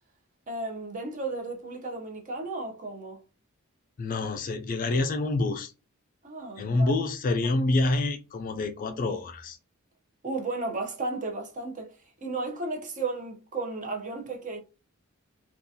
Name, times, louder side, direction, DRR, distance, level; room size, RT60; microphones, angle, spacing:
voice 1, 0.5-3.2 6.2-6.9 10.2-11.9 12.2-14.6, right 3 dB, 35° right, 0.7 m, -34 dB
voice 2, 4.0-5.7 6.6-9.6, left 2 dB, 40° left, 0.4 m, -27 dB
3.7 x 2.4 x 2.7 m
head